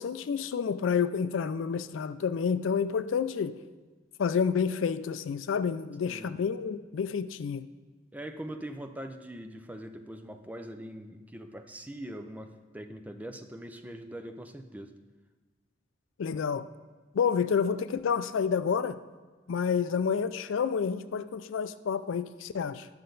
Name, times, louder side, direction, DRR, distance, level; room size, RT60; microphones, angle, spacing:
voice 1, 0.0-3.6 4.2-7.7 16.2-16.7 17.1-19.0 19.5-22.9, left 6 dB, 70° left, 13 dB, 0.4 m, -29 dB
voice 2, 8.1-14.9, right 1 dB, 10° right, 6 dB, 0.5 m, -42 dB
11.0 x 6.6 x 3.9 m, 1.4 s
head